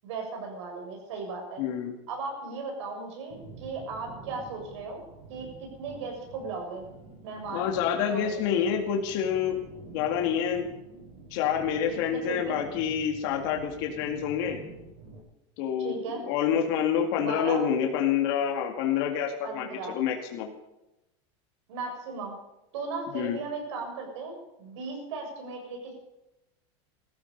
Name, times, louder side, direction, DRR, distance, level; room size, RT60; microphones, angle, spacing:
voice 1, 0.0-1.6 2.1-5.0 5.3-6.8 7.2-7.7 8.1-8.6 12.1-12.6 15.8-16.3 17.2-17.6 19.4-19.9 21.7-22.4 22.7-25.9, right 4 dB, 75° right, 2 dB, 6.7 m, -36 dB
voice 2, 1.6-1.9 7.5-9.6 9.9-10.7 11.3-14.6 15.6-16.0 16.2-20.5 23.1-23.4, left 8 dB, 50° left, 2 dB, 2.1 m, -27 dB
sound 1, 3.3-15.2, right 3 dB, 45° right, 6.6 m, -48 dB
17.5 x 14.0 x 5.4 m, 0.93 s
supercardioid pair, 165°, 15 cm